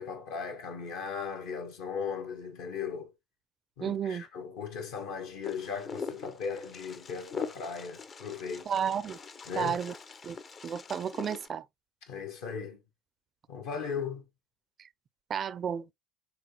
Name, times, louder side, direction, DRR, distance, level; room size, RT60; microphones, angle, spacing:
voice 1, 0.0-3.1 3.8-8.7 9.5-9.8 12.1-12.8 13.5-14.3, left 6 dB, 70° left, 1.2 m, -37 dB
voice 2, 3.8-4.2 8.7-9.2 9.6-9.9 10.2-10.4 10.6-11.7 15.3-15.9, right 8 dB, 45° right, 0.4 m, -32 dB
Wind, 5.4-11.5, left 5 dB, 40° left, 0.5 m, -43 dB
4.3 x 3.5 x 2.8 m
hypercardioid pair, 60°, 0 cm